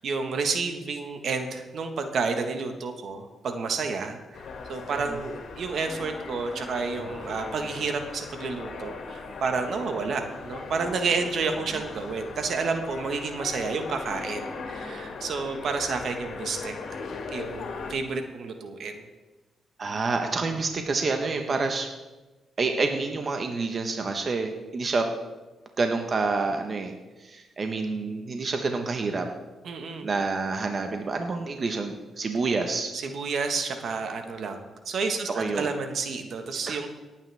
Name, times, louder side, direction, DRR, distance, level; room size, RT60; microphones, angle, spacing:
voice 1, 0.0-4.4 4.7-17.0 17.3-19.1 29.6-30.1 32.9-36.9, right 4 dB, 65° right, 6 dB, 1.4 m, -30 dB
sound 1, 4.3-17.9, left 4 dB, 70° left, 2.3 m, -38 dB
voice 2, 19.8-21.9 22.6-25.1 25.8-26.9 27.2-29.3 30.0-32.9 35.3-35.7 36.7-36.8, right 3 dB, 45° right, 5 dB, 1.2 m, -28 dB
18.0 x 8.9 x 3.5 m, 1.2 s
cardioid pair, 65°, 0 cm